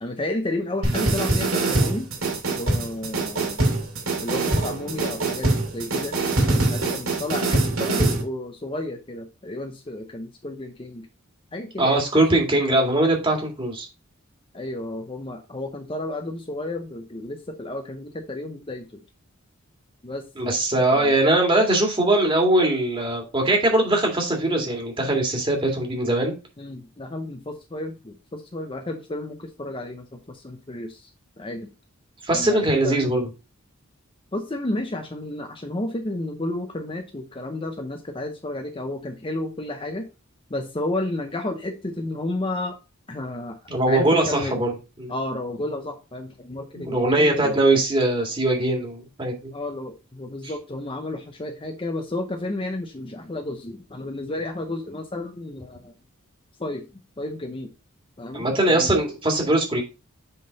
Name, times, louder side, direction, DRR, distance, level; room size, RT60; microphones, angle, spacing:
voice 1, 0.0-2.1 2.5-3.7 4.2-6.2 6.4-11.1 11.5-12.3 14.5-19.0 20.0-20.3 20.8-21.1 26.6-31.1 31.4-31.7 32.3-33.0 34.3-40.0 40.5-42.8 43.1-43.6 43.9-44.6 45.1-47.6 49.5-55.9 56.6-57.7 58.2-59.0, left 1 dB, 25° left, 4 dB, 0.7 m, -32 dB
sound 1, 0.8-8.2, right 2 dB, 70° right, 2.5 m, -23 dB
voice 2, 11.8-13.9 20.4-26.3 32.2-33.3 43.7-44.7 45.0-45.1 46.7-49.5 58.3-59.8, right 1 dB, 25° right, 0 dB, 2.0 m, -21 dB
7.7 x 3.8 x 3.9 m, 0.30 s
head